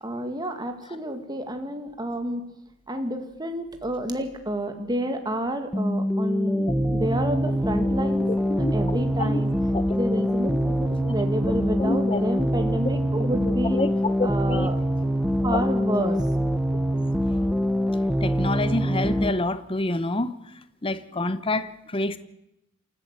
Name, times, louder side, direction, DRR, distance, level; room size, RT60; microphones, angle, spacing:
voice 1, 0.0-2.4 2.9-8.2 8.6-9.5 9.9-13.8 14.2-14.8 15.4-16.2, right 1 dB, 20° right, 6 dB, 2.0 m, -29 dB
sound 1, 5.7-19.3, equal, 5° right, 1.1 m, -24 dB
voice 2, 8.5-9.4 9.7-9.8 11.0-11.1 11.8-12.2 12.8-12.9 13.7-14.7 15.5-15.6 17.3-17.5 18.2-20.3 20.8-22.2, left 2 dB, 25° left, 13 dB, 1.0 m, -28 dB
28.5 x 14.0 x 8.2 m, 0.85 s
head